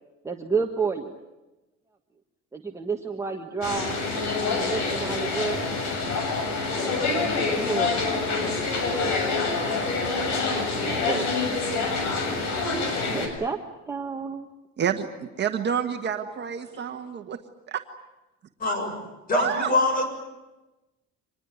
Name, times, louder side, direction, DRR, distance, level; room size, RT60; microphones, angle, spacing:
voice 1, 0.2-1.1 2.5-4.0 4.5-5.6 7.3-8.1 8.4-8.7 10.7-11.3 13.1-13.6 13.9-14.5, right 5 dB, 10° right, 1 dB, 1.5 m, -30 dB
sound 1, 3.6-13.3, left 3 dB, 75° left, 6.9 m, -26 dB
voice 2, 14.8-15.1 15.4-17.4 17.7-17.8 19.3-19.7, right 8 dB, 35° right, 5 dB, 1.5 m, -28 dB
voice 3, 18.6-19.0 19.3-20.0, left 2 dB, 30° left, 6 dB, 7.1 m, -23 dB
25.5 x 20.5 x 9.6 m, 1.0 s
cardioid pair, 165°, 29 cm